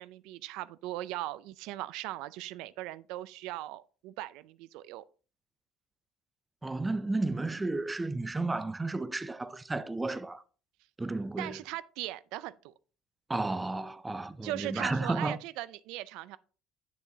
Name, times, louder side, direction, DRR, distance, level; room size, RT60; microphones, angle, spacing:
voice 1, 0.0-5.0 11.4-12.7 14.4-16.4, right 16 dB, 80° right, 0.4 m, -39 dB
voice 2, 6.6-10.4 11.0-11.6 13.3-15.4, right 2 dB, 10° right, 0.4 m, -32 dB
9.4 x 6.8 x 2.8 m
cardioid pair, 155°, 0 cm